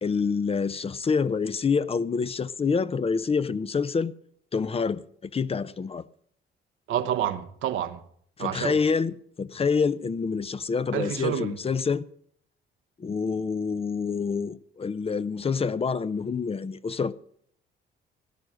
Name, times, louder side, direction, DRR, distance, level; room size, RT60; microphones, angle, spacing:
voice 1, 0.0-4.1 4.5-5.0 5.3-6.0 8.4-12.0 13.0-17.1, left 5 dB, 30° left, 0.6 m, -27 dB
voice 2, 6.9-8.0 8.4-8.8 10.9-11.6, right 10 dB, 85° right, 1.1 m, -28 dB
17.0 x 10.5 x 6.3 m
cardioid pair, 90°, 20 cm